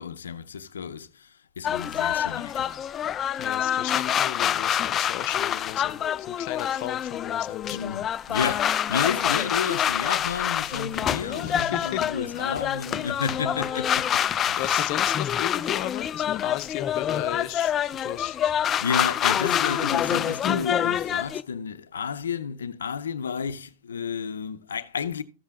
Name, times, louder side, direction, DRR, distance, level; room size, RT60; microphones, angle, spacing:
voice 1, 0.0-2.7 7.7-14.7 18.8-25.2, left 6 dB, 80° left, 0.6 m, -32 dB
sound 1, 1.6-21.4, left 10 dB, 30° left, 0.5 m, -26 dB
voice 2, 3.4-8.0 11.4-12.1 13.2-13.3 14.6-18.5, left 14 dB, 50° left, 0.9 m, -35 dB
14.0 x 7.4 x 3.6 m
hypercardioid pair, 100°, 0 cm